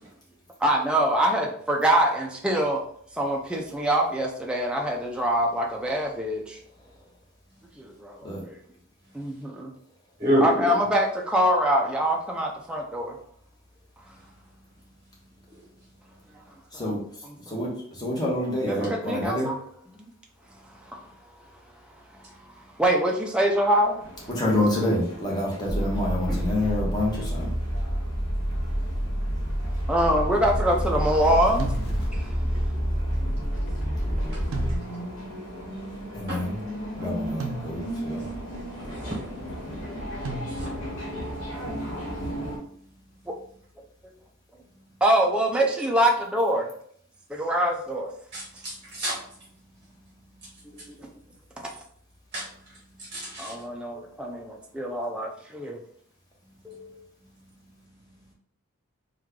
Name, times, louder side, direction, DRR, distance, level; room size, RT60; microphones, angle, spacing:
voice 1, 0.6-2.8 3.1-6.6 7.8-8.6 9.1-9.8 10.4-13.2 16.7-17.7 18.7-19.6 20.0-20.1 20.8-21.0 22.2-24.3 26.6-26.7 27.1-27.2 29.9-31.7 32.1-32.4 43.3-43.4 45.0-46.7 47.3-48.1 50.7-51.1 51.6-51.7 53.4-55.8 56.6-57.0, right 1 dB, 5° right, 0 dB, 0.3 m, -25 dB
voice 2, 10.2-10.7 26.3-26.6 36.3-36.4 37.0-37.1 38.8-39.2 48.3-49.1 52.3-52.4 53.1-53.5, equal, 25° right, -4 dB, 0.8 m, -27 dB
voice 3, 18.0-19.5 24.4-27.5 36.1-36.6 37.0-38.3, left 1 dB, 20° left, -4 dB, 1.0 m, -27 dB
sound 1, 24.0-42.6, equal, 65° left, 1.2 m, -37 dB
sound 2, 25.7-34.8, equal, 50° left, 0.8 m, -28 dB
sound 3, 31.6-32.4 34.5-35.3 37.4-38.2 40.2-41.0, right 3 dB, 75° right, 0.5 m, -36 dB
3.1 x 2.3 x 3.6 m, 0.63 s
head